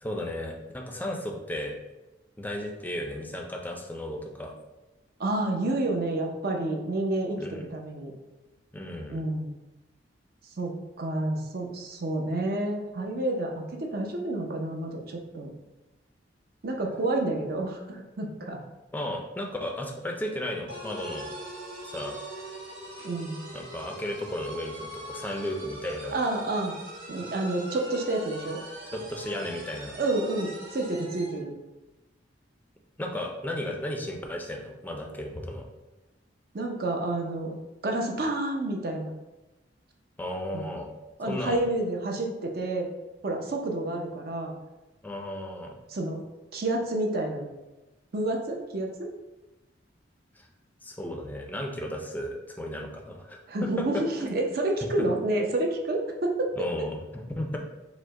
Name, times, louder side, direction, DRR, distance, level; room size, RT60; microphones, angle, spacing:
voice 1, 0.0-1.7 2.4-4.5 7.4-7.6 8.7-9.2 18.9-21.3 21.8-22.2 23.5-26.2 28.9-30.0 33.0-35.7 40.2-40.9 41.3-41.6 45.0-45.8 50.4-50.5 50.8-54.4 55.0-55.1 56.6-57.6, left 1 dB, 10° left, 2 dB, 0.4 m, -34 dB
voice 2, 5.2-7.4 7.7-8.1 9.1-9.5 10.6-15.5 16.6-18.6 23.0-23.4 26.1-26.8 27.1-28.6 29.9-31.5 36.5-37.6 37.8-39.1 40.5-40.6 41.2-42.9 43.2-44.5 45.9-46.2 46.5-47.5 48.1-49.1 53.5-56.7, right 2 dB, 55° right, 1 dB, 0.6 m, -29 dB
sound 1, 20.7-31.4, right 1 dB, 85° right, 1.2 m, -42 dB
4.8 x 2.1 x 3.7 m, 1.1 s
head